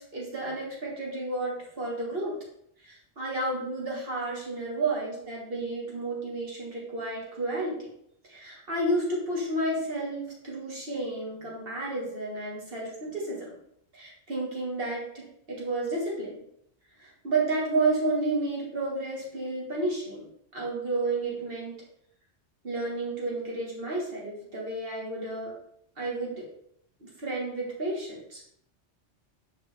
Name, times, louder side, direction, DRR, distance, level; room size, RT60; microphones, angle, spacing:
voice 1, 0.0-2.3 2.8-7.9 8.3-13.5 13.9-16.4 17.0-20.3 20.5-21.8 22.6-25.6 26.0-26.5 27.0-28.4, right 2 dB, 50° right, -3 dB, 1.8 m, -31 dB
5.8 x 4.7 x 3.4 m, 0.72 s
omnidirectional pair, 1.2 m